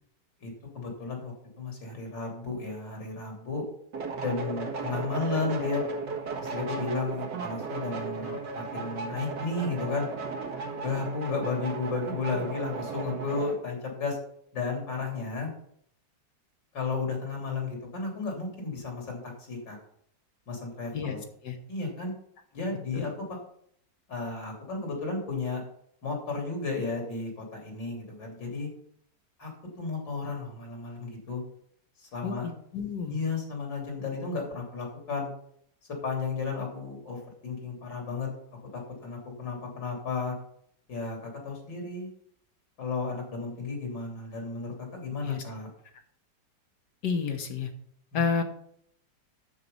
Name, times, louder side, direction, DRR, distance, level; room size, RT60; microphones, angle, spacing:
voice 1, 0.4-3.6 4.2-5.8 6.4-10.1 10.8-14.2 14.5-15.5 16.7-19.8 20.5-21.2 21.7-22.1 22.5-23.4 24.1-25.6 26.0-28.7 29.4-29.5 29.8-31.4 32.0-32.5 33.1-35.3 36.0-40.3 40.9-42.1 42.8-45.7 48.1-48.2, left 4 dB, 85° left, 1 dB, 3.9 m, -33 dB
sound 1, 3.9-13.6, right 4 dB, 70° right, 2.2 m, -35 dB
voice 2, 32.2-33.2 45.2-45.4 47.0-47.7 48.1-48.4, left 6 dB, 70° left, 5 dB, 1.9 m, -30 dB
9.5 x 7.6 x 5.5 m, 0.67 s
omnidirectional pair, 1.9 m